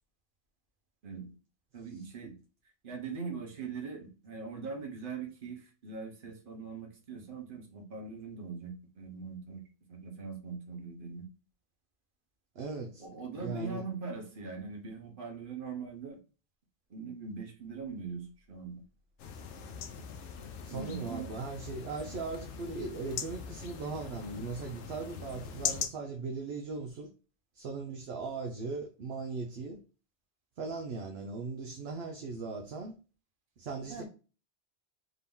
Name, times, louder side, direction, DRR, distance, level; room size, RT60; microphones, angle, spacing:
voice 1, 1.7-2.4 2.8-9.6 9.9-11.2 13.0-16.2 16.9-18.8 20.7-21.3 33.9-34.0, right 5 dB, 50° right, 1.2 m, -41 dB
voice 2, 12.6-13.0 13.4-13.9 20.6-27.1 27.5-29.8 30.6-33.0 33.6-34.0, right 4 dB, 65° right, 0.8 m, -39 dB
sound 1, 19.2-25.9, left 7 dB, 85° left, 0.9 m, -40 dB
3.8 x 2.8 x 3.4 m
omnidirectional pair, 1.2 m